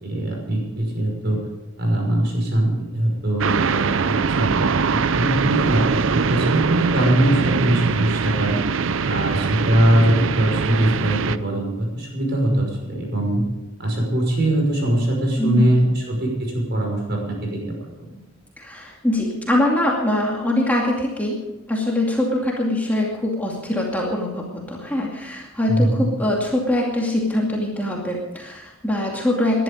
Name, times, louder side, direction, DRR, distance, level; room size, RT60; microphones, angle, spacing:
voice 1, 0.0-1.4 1.8-8.6 9.0-13.4 13.8-17.6 18.0-18.1 25.7-26.1, right 1 dB, 55° right, 0 dB, 5.6 m, -21 dB
sound 1, 3.4-11.4, right 5 dB, 70° right, 0.6 m, -22 dB
voice 2, 15.4-15.9 18.1-18.2 18.6-21.4 21.7-29.6, left 1 dB, 10° left, -2 dB, 2.4 m, -23 dB
20.5 x 11.5 x 5.2 m, 0.99 s
head